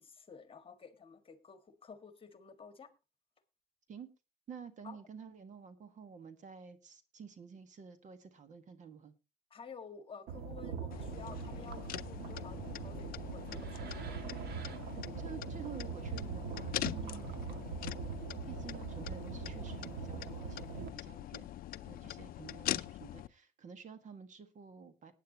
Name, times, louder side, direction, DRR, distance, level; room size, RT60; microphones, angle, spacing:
voice 1, 0.0-2.9 4.8-5.0 9.5-14.3, left 5 dB, 30° left, 9 dB, 1.7 m, -52 dB
voice 2, 4.5-9.1 15.2-17.4 18.4-21.5 21.8-25.1, right 6 dB, 45° right, 10 dB, 1.6 m, -50 dB
sound 1, 10.3-20.9, right 6 dB, 70° right, 1.8 m, -42 dB
sound 2, 10.9-23.3, left 14 dB, 60° left, 0.5 m, -43 dB
19.0 x 9.1 x 2.9 m, 0.27 s
cardioid pair, 110°, 17 cm